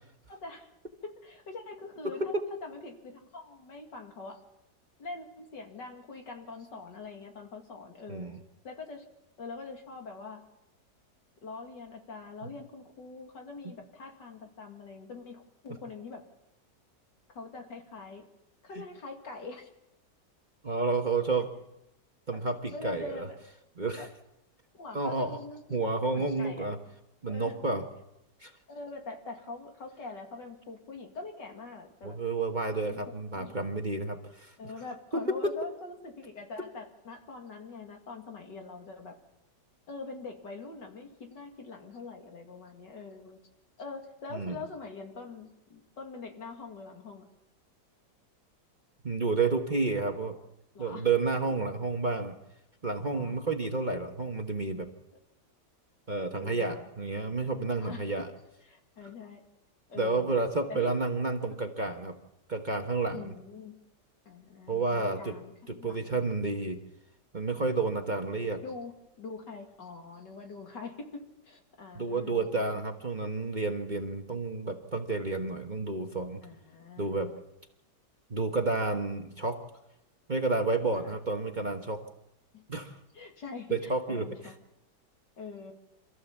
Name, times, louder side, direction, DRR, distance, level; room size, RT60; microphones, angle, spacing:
voice 1, 0.3-0.7 1.0-2.3 2.6-4.4 5.0-8.3 8.6-9.0 9.4-10.4 11.4-16.2 17.3-18.2 18.6-19.7 22.3-22.4 22.7-23.3 23.9-24.1 24.7-25.8 26.1-26.7 27.3-27.5 28.7-32.2 32.9-33.0 33.3-33.9 34.6-39.1 39.9-43.4 43.8-47.3 50.7-51.1 52.9-53.4 56.4-56.9 57.8-58.2 58.7-59.4 59.9-60.4 60.7-60.9 61.4-61.6 63.1-63.8 64.3-66.2 68.6-72.6 76.4-77.4 80.9-81.1 82.5-84.5 85.4-85.7, left 3 dB, 75° left, 3 dB, 3.0 m, -44 dB
voice 2, 2.0-2.4 8.1-8.4 20.6-21.5 22.3-23.3 23.8-24.1 24.9-25.4 25.7-26.8 27.2-27.8 28.4-28.5 32.0-34.5 35.1-35.5 44.3-44.5 49.0-50.4 50.8-52.3 52.8-54.9 56.1-58.3 60.0-62.2 62.5-63.3 64.7-65.4 65.7-66.8 67.3-68.6 71.9-76.4 77.0-77.3 78.3-79.6 80.3-82.0 82.7-82.9 83.7-84.3, right 3 dB, 30° right, 4 dB, 1.2 m, -30 dB
26.5 x 14.5 x 7.3 m, 0.90 s
omnidirectional pair, 1.9 m